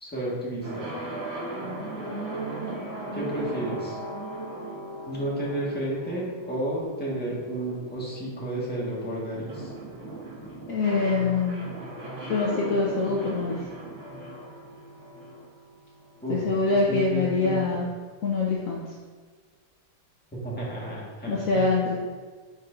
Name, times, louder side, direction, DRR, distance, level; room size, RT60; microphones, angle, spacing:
voice 1, 0.0-0.9 3.1-4.0 5.0-9.7 16.2-16.4 16.7-17.8 20.3-21.7, right 1 dB, 5° left, -6 dB, 1.2 m, -32 dB
sound 1, 0.6-16.4, right 2 dB, 65° right, 2.4 m, -38 dB
voice 2, 10.7-11.7 12.3-13.6 16.3-17.9 18.2-18.8 21.3-22.0, left 3 dB, 75° left, -3 dB, 0.7 m, -24 dB
10.0 x 4.5 x 2.5 m, 1.5 s
omnidirectional pair, 2.3 m